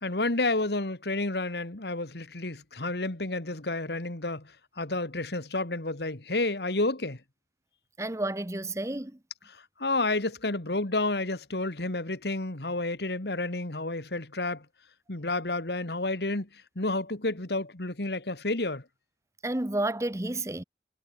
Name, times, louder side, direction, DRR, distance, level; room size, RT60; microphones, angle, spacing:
voice 1, 0.0-7.2 9.5-14.7 15.1-18.8, left 2 dB, 70° left, 2.1 m, -30 dB
voice 2, 8.0-9.2 19.4-20.6, right 1 dB, 15° right, 0.9 m, -31 dB
head